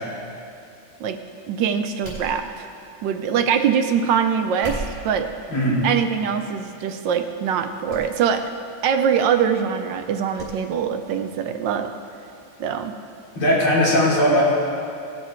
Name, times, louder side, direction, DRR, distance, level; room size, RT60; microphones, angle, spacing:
voice 1, 1.5-2.7 3.0-5.3 5.8-8.5 8.8-11.9 12.6-12.9, right 7 dB, 70° right, 7 dB, 1.2 m, -23 dB
sound 1, 2.0-2.8 4.5-5.2 6.0-6.3 6.8-6.9 7.9-8.1 8.4-8.5 10.4-10.5 10.9-11.0, right 1 dB, 25° right, 3.3 m, -35 dB
voice 2, 5.5-5.8 13.4-14.4, equal, 75° left, -7 dB, 4.1 m, -18 dB
17.5 x 7.0 x 4.4 m, 2.5 s
omnidirectional pair, 2.3 m